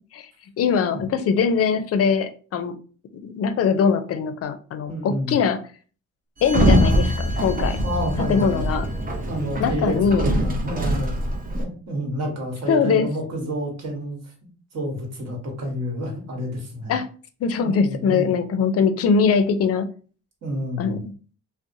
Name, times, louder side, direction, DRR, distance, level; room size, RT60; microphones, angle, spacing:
voice 1, 0.6-2.7 3.2-5.6 6.4-7.8 8.3-8.9 9.6-10.3 12.7-13.1 16.9-17.1 17.4-19.9 20.8-21.1, left 6 dB, 50° left, 10 dB, 0.5 m, -22 dB
voice 2, 4.9-5.3 7.8-8.7 9.3-11.1 11.5-14.3 14.7-17.0 17.6-18.3 20.4-21.0, equal, 60° right, 0 dB, 1.2 m, -29 dB
Sliding door, 6.4-11.6, equal, 30° right, 0.6 m, -23 dB
2.7 x 2.1 x 2.6 m, 0.39 s
cardioid pair, 90°, 30 cm